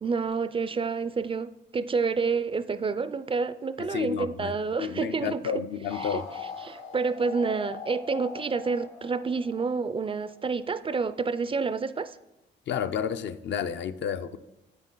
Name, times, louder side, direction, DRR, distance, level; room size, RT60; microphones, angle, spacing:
voice 1, 0.0-5.6 6.0-6.2 6.6-12.2, right 4 dB, 25° right, 0.4 m, -29 dB
voice 2, 3.8-4.5 4.8-6.3 12.7-14.4, left 8 dB, 65° left, 0.6 m, -31 dB
sound 1, 5.9-10.4, left 5 dB, 85° left, 1.6 m, -40 dB
9.8 x 8.1 x 3.8 m
cardioid pair, 90°, 20 cm